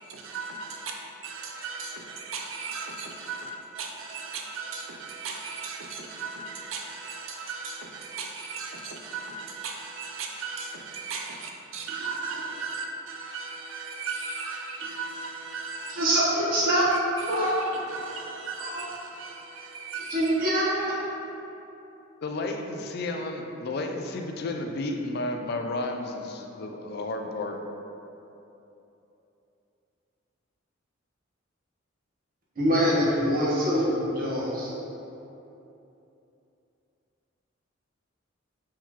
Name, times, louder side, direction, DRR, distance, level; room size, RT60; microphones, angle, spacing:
voice 1, 0.1-0.9 1.2-16.2 16.9-20.5, right 4 dB, 80° right, 0 dB, 0.5 m, -37 dB
voice 2, 15.9-16.9 17.3-17.8 18.6-18.8 20.1-20.9 32.6-34.7, equal, 45° right, -7 dB, 1.0 m, -24 dB
voice 3, 22.2-27.6, left 2 dB, 50° left, 4 dB, 0.3 m, -32 dB
4.5 x 3.6 x 2.9 m, 2.9 s
head